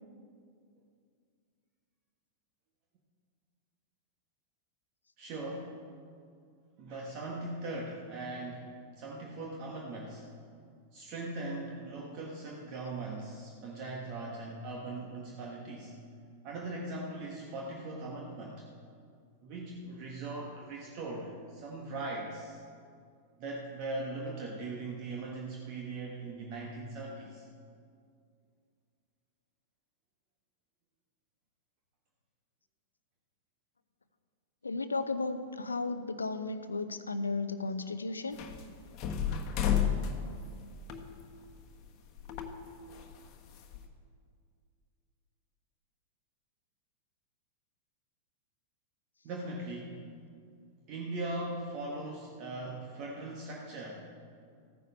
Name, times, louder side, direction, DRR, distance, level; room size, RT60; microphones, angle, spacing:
voice 1, 5.2-5.9 6.8-8.6 9.0-10.2 10.9-15.9 16.4-18.6 19.4-22.6 23.4-27.4 49.2-50.0 50.9-54.1, right 2 dB, 40° right, -2 dB, 1.6 m, -40 dB
voice 2, 34.6-38.4, left 3 dB, 80° left, 11 dB, 0.6 m, -34 dB
sound 1, 38.3-41.9 42.2-43.9, left 8 dB, 40° left, 1.3 m, -33 dB
14.5 x 9.8 x 5.5 m, 2.3 s
figure-of-eight pair, 95°, 0 cm